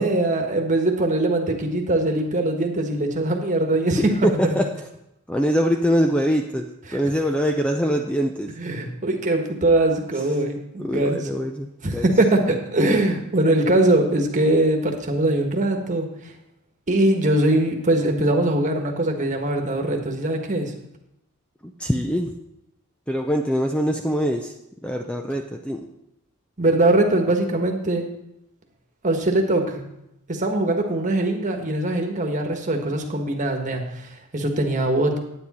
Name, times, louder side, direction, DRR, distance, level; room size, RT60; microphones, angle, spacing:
voice 1, 0.0-4.0 6.9-7.0 8.6-11.2 11.8-16.1 16.9-20.7 26.6-28.0 29.0-29.8 30.3-35.2, right 1 dB, 35° right, 3 dB, 1.4 m, -21 dB
voice 2, 4.0-4.7 5.3-8.5 10.8-12.1 21.6-22.3 23.1-24.5 24.8-25.8, equal, 5° left, 3 dB, 0.5 m, -23 dB
9.7 x 9.4 x 4.2 m, 0.83 s
head